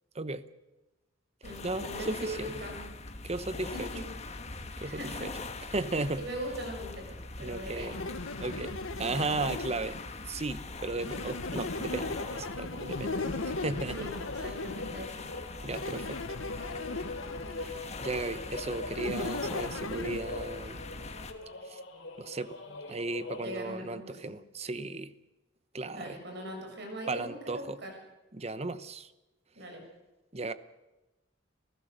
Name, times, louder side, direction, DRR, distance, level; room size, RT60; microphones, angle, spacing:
voice 1, 0.1-0.4 1.6-2.5 3.2-3.9 4.8-5.3 5.7-6.2 7.4-8.0 8.4-10.0 10.3-13.2 13.6-14.0 15.6-16.2 17.6-20.8 21.6-21.8 22.2-22.6 22.9-25.1 25.7-26.2 27.1-27.8 28.3-29.1 30.3-30.5, right 2 dB, 30° right, 14 dB, 0.9 m, -35 dB
sound 1, 1.4-21.3, left 3 dB, 35° left, 1.5 m, -42 dB
voice 2, 1.4-2.9 3.7-4.0 4.8-5.3 6.2-8.1 13.0-13.4 13.9-14.1 14.4-15.3 23.4-24.3 25.9-27.9 29.5-29.8, equal, 55° right, 2 dB, 6.4 m, -41 dB
sound 2, 7.9-10.1 11.0-15.1 15.7-17.9 19.0-20.2, left 3 dB, 85° left, 1.2 m, -37 dB
sound 3, 11.4-23.4, left 2 dB, 65° left, 5.1 m, -44 dB
28.0 x 15.5 x 6.7 m, 1.1 s
head